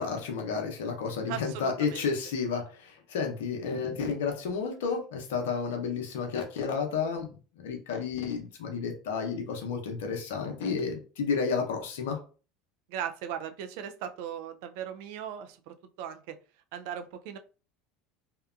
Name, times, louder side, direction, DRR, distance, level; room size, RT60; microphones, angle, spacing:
voice 1, 0.0-12.2, left 5 dB, 80° left, 3 dB, 0.6 m, -31 dB
voice 2, 1.3-2.1 12.9-16.4 16.7-17.4, right 9 dB, 70° right, 8 dB, 0.3 m, -38 dB
2.8 x 2.2 x 2.4 m, 0.36 s
hypercardioid pair, 85°, 0 cm